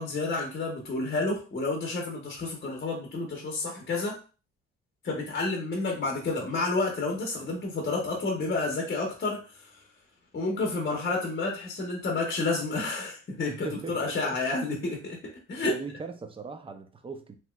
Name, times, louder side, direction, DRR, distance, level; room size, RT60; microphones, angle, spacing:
voice 1, 0.0-4.2 5.0-9.8 10.3-15.2 15.5-15.8, left 3 dB, 35° left, 0.8 m, -30 dB
voice 2, 13.5-14.4 15.6-17.4, right 4 dB, 20° right, 0.4 m, -39 dB
2.9 x 2.9 x 2.2 m
cardioid pair, 90°, 30 cm